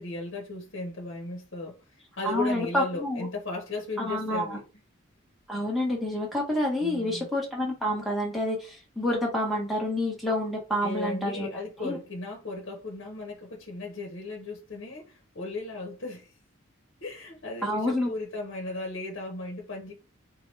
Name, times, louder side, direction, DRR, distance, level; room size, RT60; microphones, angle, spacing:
voice 1, 0.0-4.6 6.8-7.3 10.8-16.3 17.0-19.9, left 2 dB, 60° left, 1.0 m, -36 dB
voice 2, 2.2-3.3 4.0-4.6 5.5-11.5 11.8-12.0 17.6-18.1, left 1 dB, ahead, 1.3 m, -28 dB
4.8 x 2.3 x 3.2 m
head